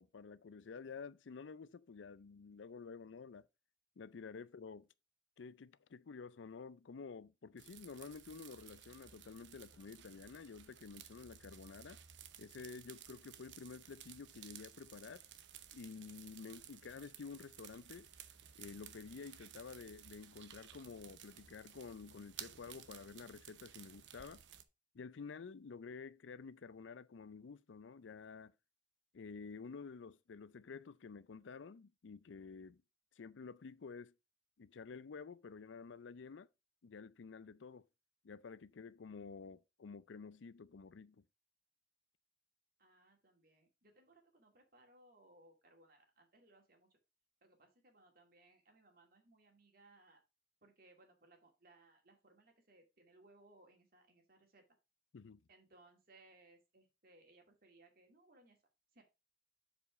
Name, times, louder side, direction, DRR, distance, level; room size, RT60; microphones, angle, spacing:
voice 1, 0.0-3.5 4.0-4.9 5.4-12.0 12.4-15.2 15.7-18.1 18.5-24.4 24.9-28.5 29.1-32.8 33.2-34.1 34.6-36.5 36.8-37.9 38.2-41.2 55.1-55.4, left 5 dB, 85° left, 0.5 m, -51 dB
sound 1, 7.6-24.6, right 9 dB, 75° right, 0.8 m, -56 dB
voice 2, 42.8-46.9 47.4-50.2 50.6-54.6 55.5-58.6 58.9-59.0, right 2 dB, 50° right, 2.3 m, -66 dB
7.3 x 5.1 x 4.6 m
head